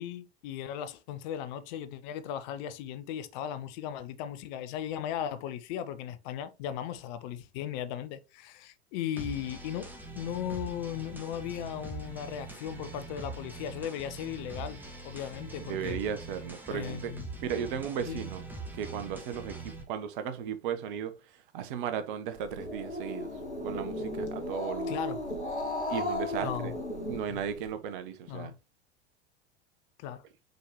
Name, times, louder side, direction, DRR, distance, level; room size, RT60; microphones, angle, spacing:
voice 1, 0.0-9.9 10.1-16.0 16.7-17.3 18.1-18.3 24.9-25.2 26.4-26.7 27.3-27.4 28.3-28.5 30.0-30.2, left 10 dB, 45° left, 0.8 m, -37 dB
sound 1, 9.2-19.8, right 3 dB, 5° right, 2.0 m, -43 dB
voice 2, 15.6-17.1 17.4-18.5 18.7-21.1 21.5-23.3 23.6-25.0 25.9-26.7 27.0-28.5, right 8 dB, 50° right, 1.1 m, -35 dB
Growling, 22.4-27.7, left 1 dB, 90° left, 1.3 m, -35 dB
6.7 x 4.7 x 3.1 m
figure-of-eight pair, 80°, 33 cm